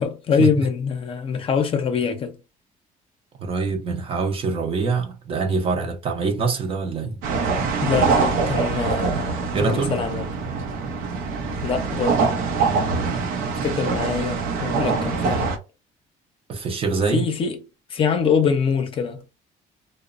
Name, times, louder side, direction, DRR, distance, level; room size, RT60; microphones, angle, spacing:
voice 1, 0.0-2.4 7.8-10.3 11.6-12.3 13.6-15.5 17.1-17.6 17.9-19.2, left 6 dB, 40° left, 0.5 m, -24 dB
voice 2, 3.4-7.2 9.5-10.0 16.5-17.3, right 4 dB, 40° right, 0.6 m, -24 dB
sound 1, 7.2-15.6, right 4 dB, 85° right, 0.6 m, -24 dB
2.9 x 2.0 x 2.4 m
cardioid pair, 125°, 14 cm